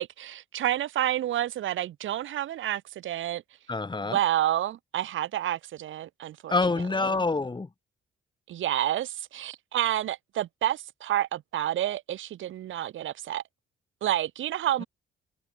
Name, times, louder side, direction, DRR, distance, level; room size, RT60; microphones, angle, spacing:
voice 1, 0.0-3.4 4.0-6.6 6.9-7.2 8.5-13.4 14.0-14.9, right 12 dB, 75° right, 6.9 m, -29 dB
voice 2, 3.7-4.2 6.5-7.7, left 3 dB, 25° left, 5.0 m, -26 dB
cardioid pair, 90°, 20 cm